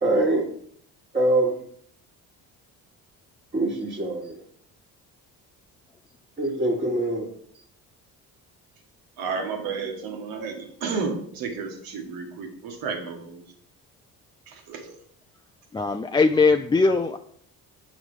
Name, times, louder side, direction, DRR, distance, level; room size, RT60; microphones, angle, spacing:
voice 1, 0.0-0.5 1.1-1.6 3.5-4.3 6.4-7.3, right 1 dB, 25° right, -4 dB, 1.6 m, -23 dB
voice 2, 9.2-13.4 14.5-15.0, right 5 dB, 80° right, 3 dB, 1.7 m, -32 dB
voice 3, 15.7-17.2, left 4 dB, 15° left, 6 dB, 0.3 m, -20 dB
7.4 x 5.0 x 4.9 m, 0.65 s
cardioid pair, 85°, 35 cm